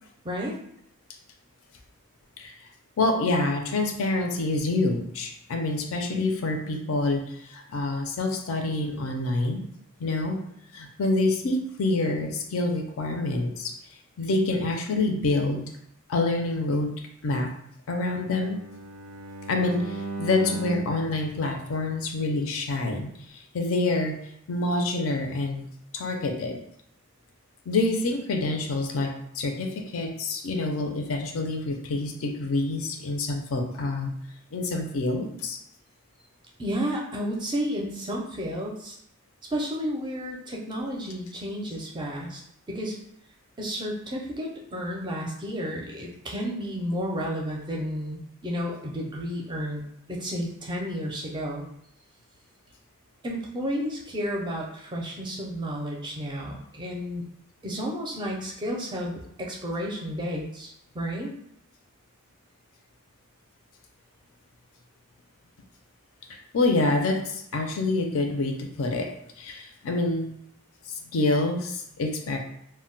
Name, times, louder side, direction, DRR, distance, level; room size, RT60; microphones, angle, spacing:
voice 1, 0.2-0.6 36.6-39.0 39.5-42.4 42.7-43.0 43.6-49.8 50.1-51.7 53.2-57.2 57.6-61.3, equal, 20° right, -2 dB, 0.4 m, -32 dB
voice 2, 3.0-9.6 10.0-10.4 10.7-13.8 14.2-15.6 16.1-16.9 17.2-17.5 17.9-18.6 19.5-24.2 24.5-25.6 25.9-26.6 27.7-34.1 34.5-35.6 66.5-70.3 70.9-72.4, left 2 dB, 65° left, 4 dB, 0.4 m, -27 dB
Bowed string instrument, 18.2-22.3, right 3 dB, 85° right, 0.5 m, -37 dB
2.1 x 2.1 x 3.8 m, 0.73 s
head